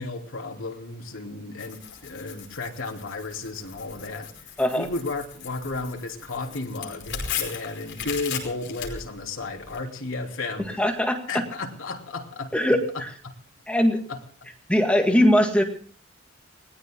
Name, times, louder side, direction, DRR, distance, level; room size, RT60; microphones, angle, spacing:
voice 1, 0.0-4.3 4.8-10.9 11.3-12.5 12.9-13.3 14.1-14.2, left 3 dB, 90° left, 3.1 m, -33 dB
Tearing, 1.6-9.8, left 7 dB, 60° left, 5.2 m, -37 dB
voice 2, 10.8-11.2 12.5-12.8 13.7-14.0 14.7-15.6, equal, 5° left, 2.0 m, -20 dB
29.5 x 20.0 x 2.3 m
head